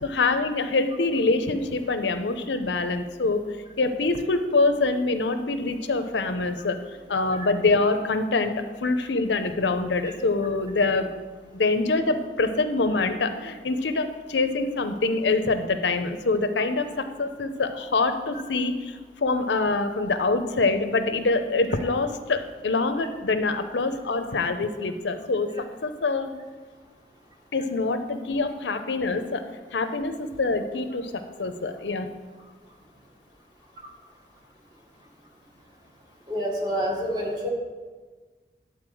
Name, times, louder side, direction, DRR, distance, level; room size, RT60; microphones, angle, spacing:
voice 1, 0.0-3.4 3.8-8.5 8.8-11.1 11.5-19.0 19.2-25.5 25.8-26.3 27.5-29.4 29.7-32.1, left 3 dB, 85° left, 9 dB, 0.7 m, -25 dB
voice 2, 36.3-37.5, equal, 25° right, -1 dB, 1.6 m, -28 dB
11.0 x 4.1 x 7.6 m, 1.4 s
head